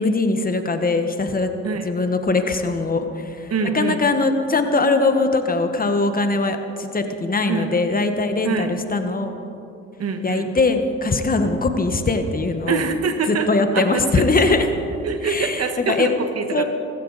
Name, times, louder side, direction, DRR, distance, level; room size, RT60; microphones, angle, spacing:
voice 1, 0.0-1.5 1.8-9.4 10.2-12.8 13.3-14.7 15.2-16.1 16.5-16.6, left 3 dB, 30° left, 7 dB, 1.3 m, -21 dB
voice 2, 3.5-4.0 7.5-7.7 8.4-8.8 10.0-10.5 12.7-13.5 13.7-14.6 15.0-16.6, right 5 dB, 55° right, 7 dB, 1.5 m, -25 dB
19.0 x 15.5 x 4.1 m, 2.7 s
cardioid pair, 90°, 30 cm